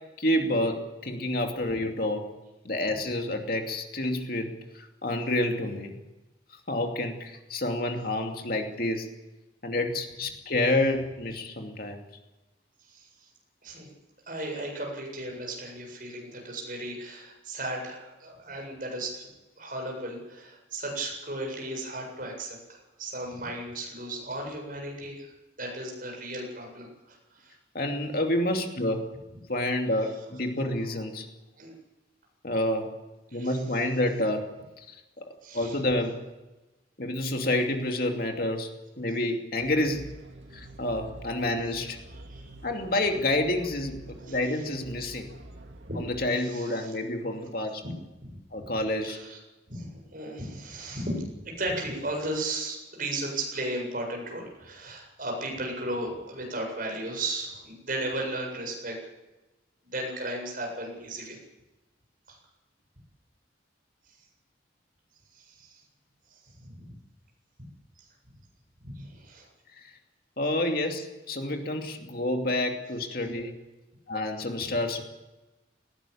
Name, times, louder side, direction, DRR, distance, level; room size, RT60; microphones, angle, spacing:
voice 1, 0.2-2.2 2.6-6.0 6.7-9.1 9.6-12.0 27.7-29.0 29.5-31.3 32.4-32.9 33.3-34.4 34.9-35.2 35.5-36.2 37.0-38.7 39.0-40.1 40.5-42.0 42.6-45.3 46.0-47.8 48.5-49.2 69.7-69.9 70.4-73.5 74.1-75.0, left 1 dB, 50° left, 3 dB, 2.7 m, -28 dB
voice 2, 12.9-13.3 13.6-13.9 14.3-19.3 19.6-25.3 25.6-27.5 31.6-31.7 33.3-33.5 35.4-35.8 42.2-42.6 44.3-44.6 45.9-46.0 46.4-46.9 47.8-47.9 48.2-48.3 49.1-49.4 49.7-59.0 59.8-61.4 62.3-62.4 65.3-65.8 66.7-66.9 68.0-68.1 68.9-69.5, right 1 dB, 45° right, 1 dB, 7.8 m, -35 dB
sound 1, 39.6-46.3, right 1 dB, 85° right, 2.4 m, -47 dB
19.5 x 17.0 x 8.7 m, 1.1 s
head